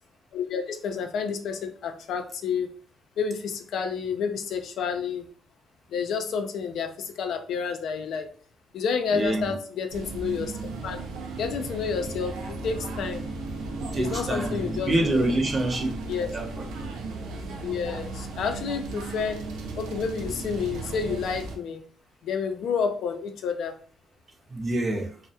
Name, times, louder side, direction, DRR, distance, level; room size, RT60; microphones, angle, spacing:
voice 1, 0.3-2.7 3.2-5.3 5.9-8.3 8.7-11.0 11.4-13.2 14.0-15.3 16.1-16.3 17.6-19.4 19.8-21.8 22.2-23.8, left 6 dB, 75° left, 0.4 m, -30 dB
voice 2, 9.1-9.5 13.8-16.0 16.3-16.5 24.5-25.1, right 2 dB, 35° right, 0.6 m, -26 dB
sound 1, 9.9-21.6, right 3 dB, 90° right, 0.4 m, -35 dB
2.2 x 2.0 x 2.7 m
cardioid pair, 90°, 0 cm